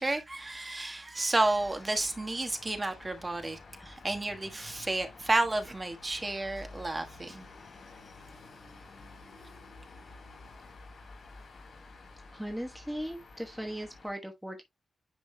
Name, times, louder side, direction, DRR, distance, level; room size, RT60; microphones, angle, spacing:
voice 1, 0.0-7.4, right 2 dB, 20° right, 1.4 m, -31 dB
sound 1, 1.4-14.1, left 3 dB, 55° left, 3.8 m, -51 dB
voice 2, 12.3-14.6, equal, 5° right, 1.1 m, -38 dB
10.0 x 5.1 x 2.2 m
wide cardioid pair, 135°, 0 cm